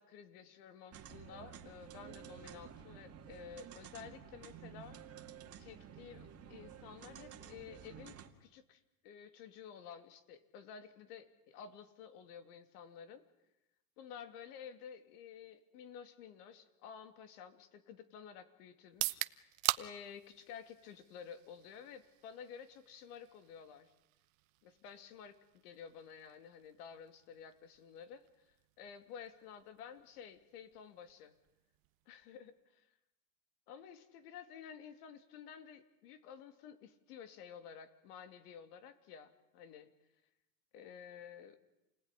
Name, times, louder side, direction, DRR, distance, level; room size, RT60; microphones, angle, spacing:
voice 1, 0.0-5.0 5.6-8.1 8.4-13.2 14.0-19.5 19.8-23.9 24.6-25.4 25.6-31.3 32.1-32.5 33.7-39.9 40.7-41.6, left 7 dB, 70° left, 10 dB, 2.9 m, -52 dB
sound 1, 0.9-8.3, right 9 dB, 30° right, 2.2 m, -52 dB
sound 2, 18.8-32.7, right 23 dB, 55° right, 1.0 m, -45 dB
28.0 x 19.0 x 10.0 m, 0.91 s
supercardioid pair, 130°, 48 cm